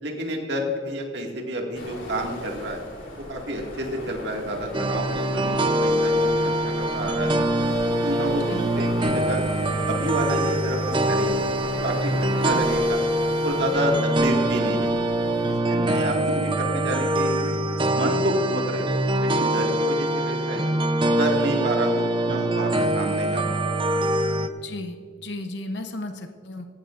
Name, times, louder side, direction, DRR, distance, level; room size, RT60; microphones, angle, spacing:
voice 1, 0.0-2.8 3.3-7.5 8.0-9.5 9.9-11.4 11.8-13.0 13.4-15.1 15.6-17.6 17.9-18.9 19.2-20.7 21.2-24.0, right 1 dB, 60° right, 1 dB, 2.1 m, -29 dB
sound 1, 1.7-15.5, left 1 dB, 90° left, 3.6 m, -38 dB
sound 2, 4.7-24.5, right 1 dB, 25° right, 0.6 m, -24 dB
voice 2, 24.6-26.7, left 2 dB, 65° left, 6 dB, 0.9 m, -34 dB
17.0 x 15.0 x 2.6 m, 2.1 s
head